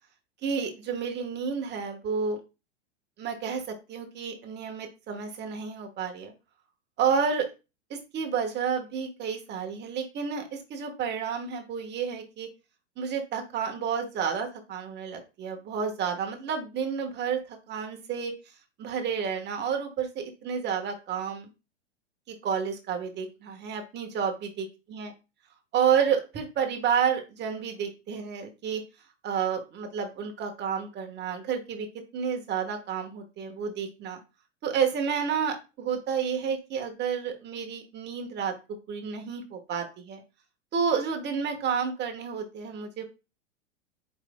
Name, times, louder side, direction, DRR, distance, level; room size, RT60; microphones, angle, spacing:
voice 1, 0.4-2.4 3.2-3.6 3.9-6.3 7.0-7.5 7.9-12.5 13.0-18.3 18.8-21.5 22.3-25.1 25.7-28.8 29.2-31.9 32.1-34.2 34.6-38.5 38.9-40.2 40.7-43.0, right 7 dB, 30° right, 3 dB, 1.3 m, -30 dB
4.9 x 4.7 x 2.2 m, 0.29 s
hypercardioid pair, 110°, 37 cm